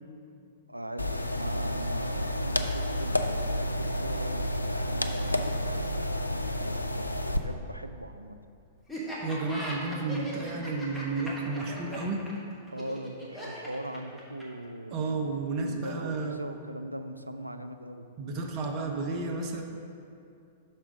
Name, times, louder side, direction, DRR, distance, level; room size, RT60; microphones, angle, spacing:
voice 1, 0.7-8.4 12.7-18.1, right 1 dB, 85° right, 8 dB, 0.3 m, -41 dB
sound 1, 1.0-7.4, left 1 dB, 85° left, 0.3 m, -30 dB
Laughter, 8.9-14.7, right 1 dB, 5° left, 1.2 m, -39 dB
voice 2, 9.2-12.3 14.9-16.3 18.2-19.6, right 3 dB, 35° right, 2 dB, 0.7 m, -32 dB
5.9 x 4.3 x 5.2 m, 2.5 s
figure-of-eight pair, 105°, 0 cm